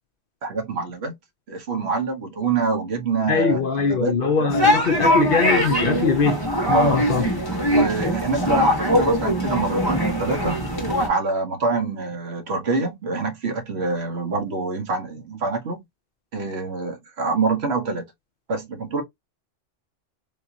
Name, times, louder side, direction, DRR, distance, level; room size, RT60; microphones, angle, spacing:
voice 1, 0.4-1.1 1.5-4.6 6.7-7.1 7.6-10.6 11.1-15.8 16.3-18.0 18.5-19.0, right 3 dB, 60° right, 1.2 m, -25 dB
voice 2, 3.3-7.2, left 5 dB, 60° left, 0.6 m, -22 dB
sound 1, 4.5-11.1, equal, 20° left, 1.2 m, -21 dB
3.6 x 2.8 x 2.5 m
omnidirectional pair, 1.2 m